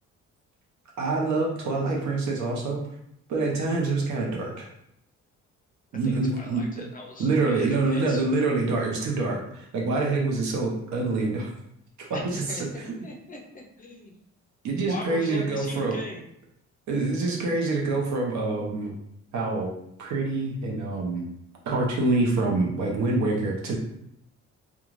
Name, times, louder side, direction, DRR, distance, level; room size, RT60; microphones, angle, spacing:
voice 1, 1.0-2.8 3.3-4.7 5.9-6.6 7.2-11.5 12.0-12.9 14.6-16.0 16.9-18.9 19.3-19.7 20.0-21.2 21.6-23.8, right 3 dB, 70° right, -1 dB, 0.7 m, -26 dB
voice 2, 6.0-8.3 12.1-12.6 13.0-13.4 13.8-14.2 14.9-16.2, left 2 dB, 30° left, 0 dB, 0.6 m, -40 dB
2.4 x 2.3 x 3.1 m, 0.76 s
cardioid pair, 90°, 30 cm